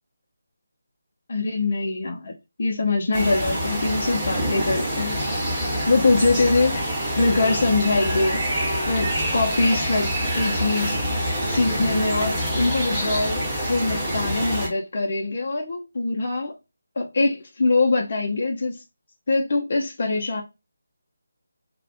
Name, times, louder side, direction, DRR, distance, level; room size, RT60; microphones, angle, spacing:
voice 1, 1.3-2.3 2.6-5.2 5.9-8.5 8.9-11.0 11.5-16.5 17.0-18.8 19.3-20.4, left 3 dB, 50° left, 0.5 m, -23 dB
sound 1, 3.1-14.7, equal, 5° right, 0.9 m, -26 dB
2.4 x 2.1 x 2.5 m
figure-of-eight pair, 155°, 0 cm